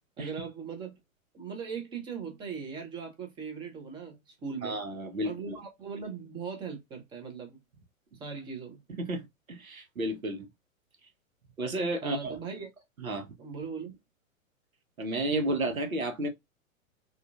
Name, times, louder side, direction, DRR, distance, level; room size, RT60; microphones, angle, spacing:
voice 1, 0.2-1.0 1.3-4.2 4.4-4.8 5.2-7.6 8.2-8.8 12.0-12.7 13.4-14.0, right 6 dB, 10° right, 0.6 m, -39 dB
voice 2, 4.6-5.5 9.0-9.2 9.5-10.5 11.6-12.4 13.0-13.3 15.0-16.3, right 1 dB, 80° right, 1.0 m, -32 dB
3.7 x 2.4 x 2.3 m
figure-of-eight pair, 110°, 41 cm